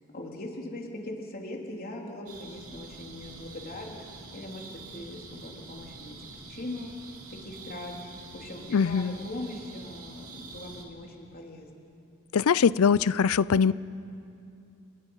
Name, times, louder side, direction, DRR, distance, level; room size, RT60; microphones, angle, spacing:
voice 1, 0.1-4.1 4.3-6.2 6.5-6.9 7.3-7.9 8.3-11.7, left 1 dB, 45° left, 0 dB, 3.5 m, -40 dB
sound 1, 2.3-10.8, right 3 dB, 85° right, 3.0 m, -46 dB
voice 2, 8.7-9.2 12.3-13.7, left 6 dB, 75° left, 19 dB, 0.5 m, -22 dB
29.5 x 21.5 x 5.7 m, 2.6 s
head